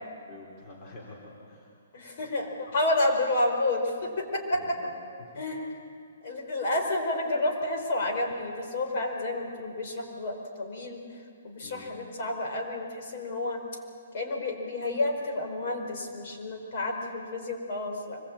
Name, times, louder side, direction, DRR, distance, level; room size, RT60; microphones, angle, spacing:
voice 1, 0.3-1.7 2.7-2.8 4.5-4.9 5.2-5.3 11.6-11.9, left 2 dB, 25° left, -4 dB, 3.6 m, -47 dB
voice 2, 1.9-4.8 5.4-5.8 6.2-13.6 14.1-18.2, left 2 dB, 45° left, 2 dB, 4.8 m, -30 dB
25.0 x 22.0 x 8.7 m, 2.3 s
hypercardioid pair, 165°, 0 cm